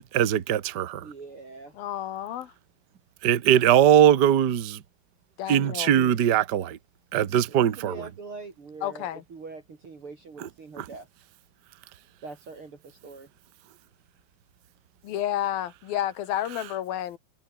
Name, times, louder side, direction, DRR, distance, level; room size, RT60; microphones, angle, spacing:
voice 1, 0.0-1.0 3.2-4.8 5.5-6.8 7.1-7.9 10.4-10.5 10.8-10.9, right 10 dB, 65° right, 1.0 m, -21 dB
voice 2, 1.0-1.7 7.5-11.1 12.2-13.3, right 4 dB, 40° right, 3.7 m, -43 dB
voice 3, 1.8-2.5 5.4-5.9 8.8-9.2 15.0-17.2, left 12 dB, 85° left, 3.5 m, -30 dB
omnidirectional pair, 4.1 m